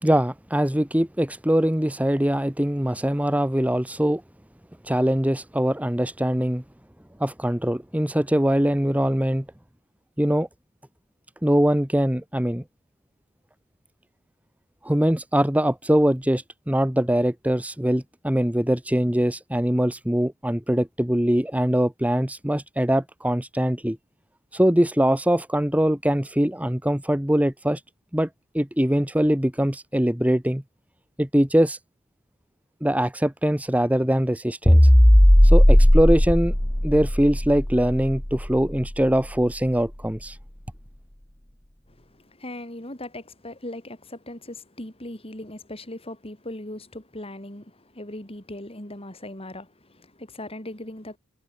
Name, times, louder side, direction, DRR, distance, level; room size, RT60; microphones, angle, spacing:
voice 1, 0.0-4.2 4.8-6.6 7.2-9.4 10.2-10.5 11.4-12.6 14.8-24.0 24.5-27.8 28.1-28.3 28.5-30.6 31.2-31.8 32.8-34.9 35.4-36.5 36.8-40.4, equal, 5° right, 1.3 m, -22 dB
sound 1, 34.7-39.1, equal, 10° left, 1.1 m, -16 dB
voice 2, 41.9-51.2, left 1 dB, 25° left, 4.6 m, -39 dB
head